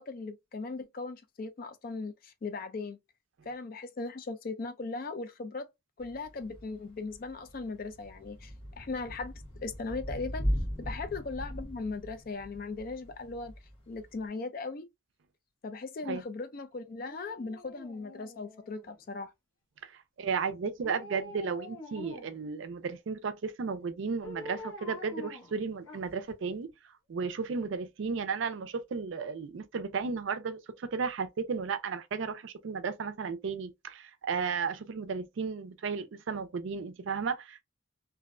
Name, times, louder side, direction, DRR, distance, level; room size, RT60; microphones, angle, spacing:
voice 1, 0.0-3.0 3.4-5.7 6.0-9.3 9.6-10.5 10.8-13.5 13.9-14.9 15.6-19.3, left 3 dB, 45° left, 0.4 m, -38 dB
Thunder / Rain, 6.0-14.3, equal, 25° left, 0.8 m, -38 dB
Dog, 17.0-19.1 20.8-22.5 24.2-26.3 26.7-26.8, left 1 dB, 90° left, 0.9 m, -46 dB
voice 2, 20.2-26.7 27.1-37.6, right 5 dB, 65° right, 0.4 m, -34 dB
2.5 x 2.0 x 2.4 m
head